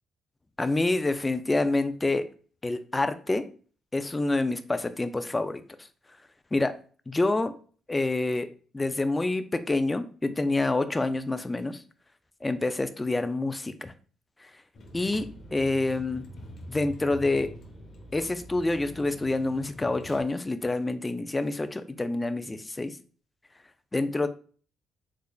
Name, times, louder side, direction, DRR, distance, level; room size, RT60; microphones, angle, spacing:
voice 1, 0.6-2.3 2.6-3.5 3.9-5.6 6.5-6.8 7.1-7.5 7.9-8.5 8.7-11.8 12.4-13.9 14.4-14.5 14.9-16.3 16.7-17.6 18.1-23.0 23.9-24.3, left 2 dB, 20° left, 11 dB, 0.3 m, -27 dB
Vehicle, 14.7-20.2, equal, 55° left, 0.8 m, -45 dB
3.7 x 3.2 x 2.3 m, 0.41 s
cardioid pair, 90°, 0 cm